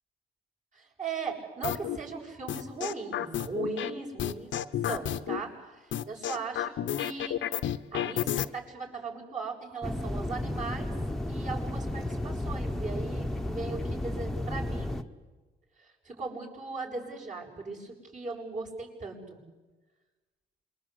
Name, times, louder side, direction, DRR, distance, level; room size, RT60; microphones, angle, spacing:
voice 1, 0.7-4.5 4.9-7.4 7.9-10.9 11.3-15.0 15.8-19.4, right 4 dB, 40° right, -2 dB, 7.6 m, -38 dB
sound 1, 1.6-2.0 2.5-3.9 4.2-5.4 5.9-8.5, left 11 dB, 70° left, 1.0 m, -31 dB
sound 2, 9.8-15.0, left 1 dB, ahead, 1.4 m, -33 dB
27.0 x 24.0 x 8.2 m, 1.2 s
cardioid pair, 90°, 20 cm